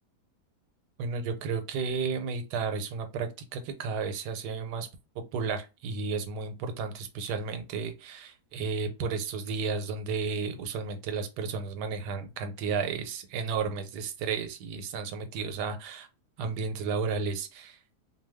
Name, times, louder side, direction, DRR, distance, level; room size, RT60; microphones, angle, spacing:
voice 1, 1.0-4.9 5.3-16.1 16.4-17.8, right 5 dB, 85° right, 1.2 m, -33 dB
2.6 x 2.3 x 3.3 m
omnidirectional pair, 1.7 m